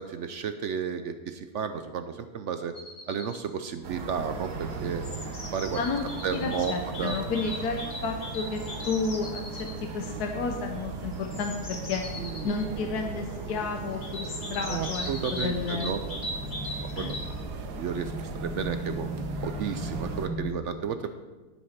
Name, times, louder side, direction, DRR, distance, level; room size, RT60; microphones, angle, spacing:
voice 1, 0.0-2.7 3.1-5.0 5.5-5.8 6.2-6.7 7.0-7.2 12.2-12.5 14.7-16.2 17.0-17.3 17.8-18.1 18.4-21.1, right 7 dB, 65° right, 9 dB, 0.8 m, -33 dB
sound 1, 2.7-3.4 4.5-9.8 11.1-12.7 14.0-17.4, left 1 dB, 30° left, 1.4 m, -39 dB
sound 2, 3.8-20.3, right 4 dB, 80° right, 1.5 m, -38 dB
voice 2, 5.7-6.1 6.3-8.6 8.9-12.0 12.4-15.9 17.0-17.1, left 4 dB, 75° left, 3 dB, 1.4 m, -31 dB
sound 3, 12.3-20.5, equal, ahead, 0.6 m, -39 dB
10.5 x 9.7 x 4.3 m, 1.2 s
omnidirectional pair, 1.7 m